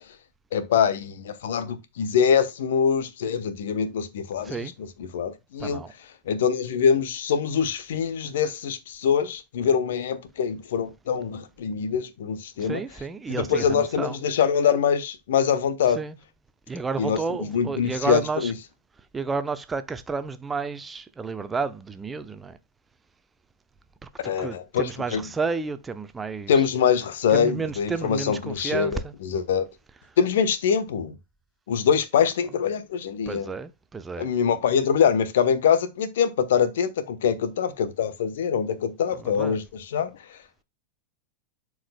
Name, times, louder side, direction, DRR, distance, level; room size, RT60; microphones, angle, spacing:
voice 1, 0.5-5.8 6.3-12.8 13.3-16.0 17.0-17.2 17.5-18.5 24.2-25.2 26.5-29.6 30.2-31.1 31.7-33.5 34.2-40.1, left 7 dB, 60° left, 1.0 m, -24 dB
voice 2, 4.4-4.7 5.6-5.9 12.6-14.2 15.9-16.1 16.7-18.5 19.1-22.6 24.2-26.7 27.3-29.1 32.2-32.3 33.3-34.3 39.2-39.6, right 4 dB, 15° right, 0.7 m, -31 dB
11.5 x 4.8 x 2.2 m
figure-of-eight pair, 90°, 0 cm